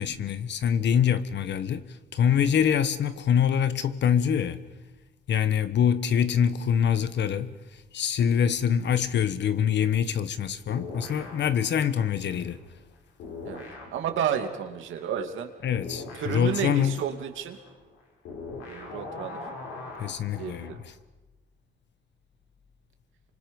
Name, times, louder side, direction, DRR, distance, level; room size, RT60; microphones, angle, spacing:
voice 1, 0.0-4.6 5.3-12.6 15.6-17.0 20.0-20.9, left 8 dB, 65° left, 1.3 m, -25 dB
sound 1, 10.7-12.9 13.2-20.8, left 3 dB, 90° left, 6.7 m, -42 dB
voice 2, 13.9-15.5 16.2-17.6 18.6-19.4 20.4-20.8, right 8 dB, 80° right, 2.4 m, -31 dB
28.5 x 25.0 x 5.4 m
cardioid pair, 90°, 20 cm